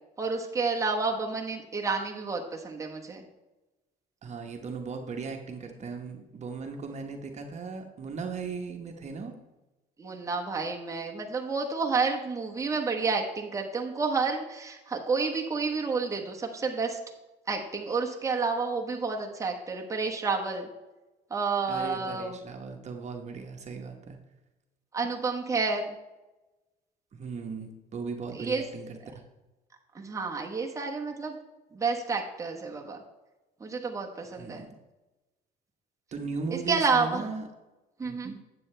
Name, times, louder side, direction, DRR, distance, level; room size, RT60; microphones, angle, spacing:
voice 1, 0.2-3.2 10.0-17.0 17.5-20.7 21.3-22.4 24.9-25.9 28.3-28.6 29.9-31.3 31.7-33.0 33.6-34.6 36.5-37.3 38.0-38.3, right 4 dB, 20° right, 0 dB, 1.2 m, -30 dB
voice 2, 4.2-9.3 21.7-24.2 27.1-29.0 34.4-34.7 36.1-37.4 38.0-38.4, right 4 dB, 40° right, 3 dB, 1.2 m, -37 dB
9.4 x 7.9 x 3.3 m, 1.1 s
cardioid pair, 110°, 17 cm